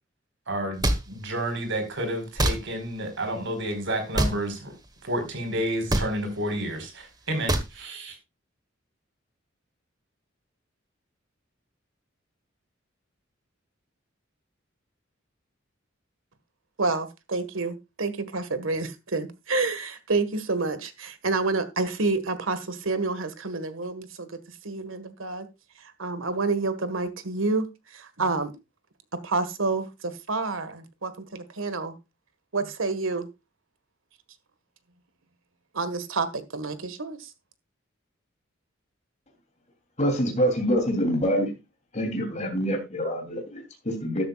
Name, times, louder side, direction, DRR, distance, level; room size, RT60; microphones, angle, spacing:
voice 1, 0.5-4.7 5.0-8.2, right 1 dB, 65° right, 7 dB, 4.8 m, -30 dB
sound 1, 0.8-1.0 2.4-2.6 4.1-4.4 5.9-6.1 7.5-7.7, right 1 dB, 20° right, 1.4 m, -23 dB
voice 2, 16.8-24.4 24.6-25.5 26.0-27.7 27.9-28.5 29.2-32.0 32.5-33.3 35.7-37.3, right 3 dB, 85° right, 12 dB, 1.7 m, -28 dB
voice 3, 40.0-41.5 41.9-44.2, equal, 35° left, 3 dB, 3.1 m, -26 dB
13.0 x 11.5 x 2.4 m, 0.24 s
head